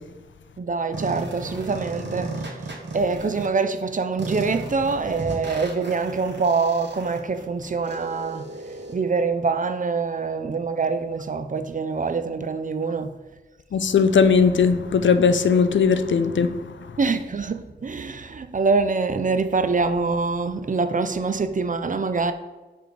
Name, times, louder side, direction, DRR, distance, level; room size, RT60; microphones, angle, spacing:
voice 1, 0.6-2.6 2.9-8.5 8.9-13.2 17.0-22.3, right 4 dB, 45° right, 0.4 m, -25 dB
sound 1, 0.9-3.5 4.2-8.9, right 2 dB, 70° right, 1.1 m, -35 dB
voice 2, 13.7-16.5, left 5 dB, 80° left, 0.4 m, -18 dB
5.9 x 3.4 x 4.9 m
wide cardioid pair, 70°, 19 cm